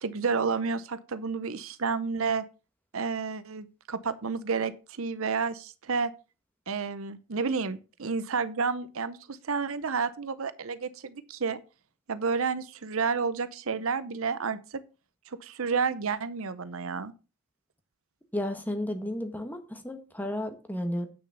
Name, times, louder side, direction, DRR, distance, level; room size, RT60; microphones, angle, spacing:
voice 1, 0.0-2.4 2.9-6.1 6.7-11.6 12.1-14.8 15.4-17.1, right 5 dB, 65° right, 0.7 m, -30 dB
voice 2, 18.3-21.1, left 1 dB, 10° left, 1.4 m, -33 dB
9.0 x 6.4 x 5.5 m
head